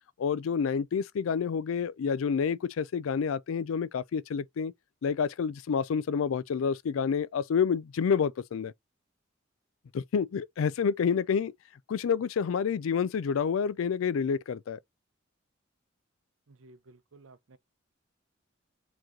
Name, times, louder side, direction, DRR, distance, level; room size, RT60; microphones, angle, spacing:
voice 1, 0.2-4.7 5.0-8.7 9.9-11.5 11.9-14.8, left 6 dB, 90° left, 0.4 m, -28 dB
voice 2, 16.5-17.6, right 2 dB, 75° right, 0.6 m, -55 dB
4.7 x 3.0 x 3.7 m
head